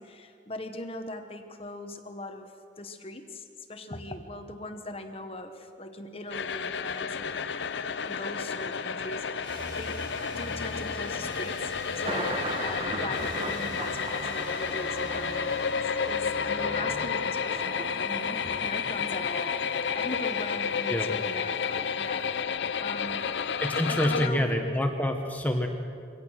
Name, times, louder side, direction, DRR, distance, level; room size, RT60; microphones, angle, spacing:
voice 1, 0.0-7.4 8.0-10.0 10.4-23.3 23.9-24.6, left 1 dB, 30° left, 6 dB, 1.2 m, -40 dB
sound 1, 6.3-24.3, left 6 dB, 70° left, 0.6 m, -31 dB
sound 2, 9.4-16.9, right 1 dB, 85° right, 4.6 m, -44 dB
Thunder, 10.1-22.4, right 2 dB, 30° right, 1.4 m, -40 dB
voice 2, 23.6-25.7, left 1 dB, 10° left, 3 dB, 1.3 m, -27 dB
24.5 x 18.0 x 6.4 m, 2.4 s
head